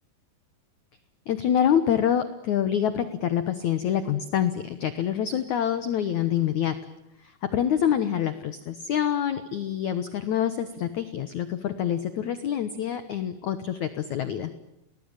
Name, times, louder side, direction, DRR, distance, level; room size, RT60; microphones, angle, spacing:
voice 1, 1.3-6.7 7.5-14.5, left 9 dB, 75° left, 11 dB, 1.7 m, -26 dB
30.0 x 20.5 x 9.0 m, 0.87 s
omnidirectional pair, 5.2 m